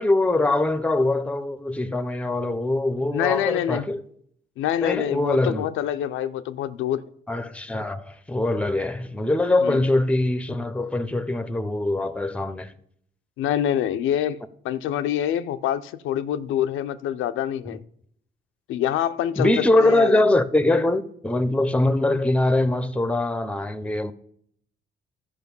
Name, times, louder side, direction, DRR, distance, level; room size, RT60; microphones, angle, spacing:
voice 1, 0.0-4.0 4.8-5.7 7.3-12.7 19.4-24.1, left 2 dB, 5° left, 0.7 m, -23 dB
voice 2, 3.1-3.8 4.6-7.0 9.6-9.8 13.4-14.4 14.6-17.8 18.7-20.2, left 11 dB, 85° left, 0.5 m, -26 dB
12.5 x 5.1 x 5.4 m
cardioid pair, 90°, 20 cm